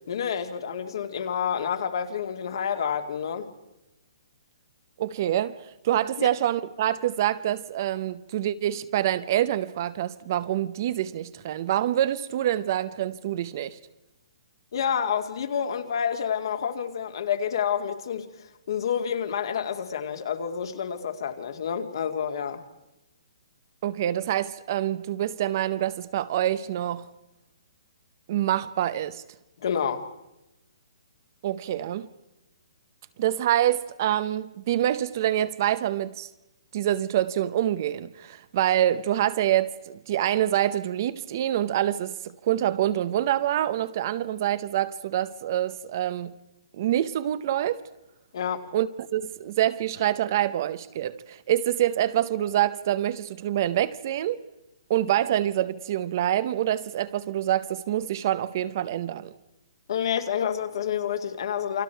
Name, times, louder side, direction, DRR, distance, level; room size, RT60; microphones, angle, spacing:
voice 1, 0.1-3.5 6.2-6.3 14.7-18.3 18.7-22.6 29.6-30.1 48.3-48.7 59.9-61.8, left 8 dB, 50° left, 2.2 m, -28 dB
voice 2, 5.0-13.8 23.8-27.1 28.3-29.2 31.4-32.1 33.2-36.3 36.7-46.3 46.8-47.8 48.7-54.4 54.9-59.3, right 12 dB, 35° right, 0.7 m, -26 dB
29.0 x 23.5 x 4.6 m
hypercardioid pair, 170°, 3 cm